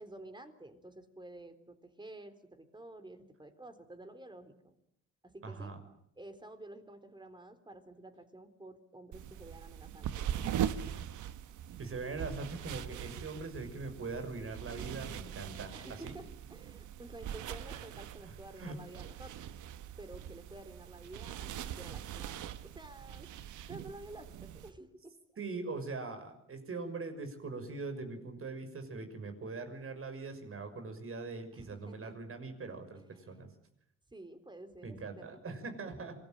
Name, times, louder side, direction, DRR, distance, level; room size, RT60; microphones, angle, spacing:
voice 1, 0.0-4.7 5.2-5.7 6.2-10.8 15.7-19.3 20.0-23.3 23.7-25.1 31.5-32.1 33.0-33.4 34.1-35.4 35.9-36.0, right 1 dB, 15° right, 9 dB, 3.9 m, -51 dB
voice 2, 5.4-5.8 11.8-15.7 16.0-16.2 18.2-18.3 18.6-18.8 25.4-33.0 33.3-33.5 34.8-36.1, right 3 dB, 45° right, 8 dB, 6.2 m, -41 dB
sound 1, 9.1-24.7, right 10 dB, 80° right, 1.4 m, -41 dB
26.5 x 20.0 x 9.0 m, 0.74 s
cardioid pair, 90°, 30 cm